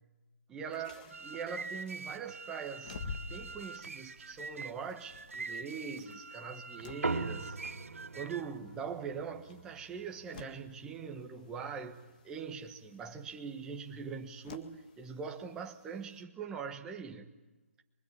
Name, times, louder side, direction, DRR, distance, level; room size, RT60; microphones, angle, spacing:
voice 1, 0.5-3.0 3.3-7.6 8.1-17.3, right 6 dB, 10° right, 1.4 m, -42 dB
sound 1, 0.7-16.2, left 5 dB, 35° left, 1.9 m, -52 dB
sound 2, 0.9-8.6, right 4 dB, 70° right, 0.9 m, -45 dB
sound 3, 7.0-11.8, right 3 dB, 85° right, 2.2 m, -41 dB
29.0 x 24.0 x 8.7 m
hypercardioid pair, 160°, 8 cm